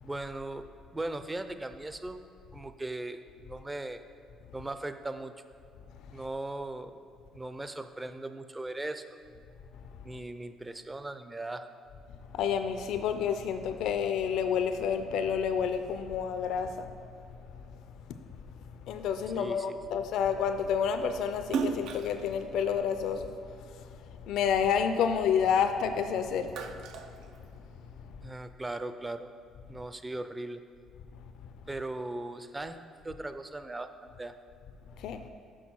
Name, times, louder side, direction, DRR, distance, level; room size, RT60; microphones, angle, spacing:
voice 1, 0.0-2.2 2.5-4.0 4.5-5.3 6.1-7.0 7.3-9.2 10.0-11.7 19.4-20.0 28.2-29.3 29.7-30.6 31.7-32.8 33.0-34.3, right 2 dB, 20° right, 10 dB, 0.5 m, -38 dB
voice 2, 12.3-16.9 18.9-23.3 24.3-26.8 35.0-35.2, left 7 dB, 75° left, 8 dB, 0.4 m, -29 dB
Splash splatter, 21.4-24.0 24.5-25.9 26.2-28.0, right 5 dB, 75° right, 0.5 m, -37 dB
6.2 x 5.3 x 6.1 m, 2.5 s
supercardioid pair, 75°, 0 cm